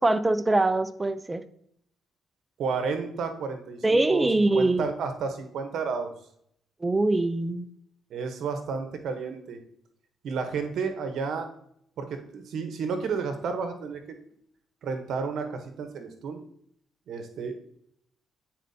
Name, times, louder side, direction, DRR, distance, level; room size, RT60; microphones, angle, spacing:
voice 1, 0.0-1.4 3.8-4.9 6.8-7.7, right 2 dB, 20° right, 11 dB, 0.5 m, -23 dB
voice 2, 2.6-4.3 4.5-6.1 8.1-9.6 10.2-11.5 12.0-14.0 14.8-16.4 17.1-17.6, right 5 dB, 70° right, 6 dB, 0.9 m, -31 dB
9.1 x 4.3 x 2.7 m, 0.69 s
cardioid pair, 90°, 0 cm